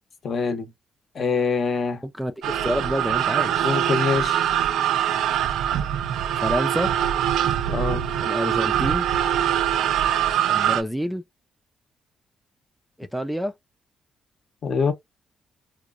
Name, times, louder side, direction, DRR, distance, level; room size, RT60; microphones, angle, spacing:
voice 1, 0.2-0.7 1.1-2.0 3.6-4.4 7.7-8.1 14.6-14.9, left 5 dB, 50° left, 0.8 m, -24 dB
voice 2, 2.0-3.6 6.4-6.9 8.2-9.1 10.5-11.2 13.0-13.5, equal, ahead, 0.4 m, -28 dB
sound 1, 2.4-10.8, right 10 dB, 80° right, 0.3 m, -23 dB
2.9 x 2.1 x 2.3 m
cardioid pair, 90°, 0 cm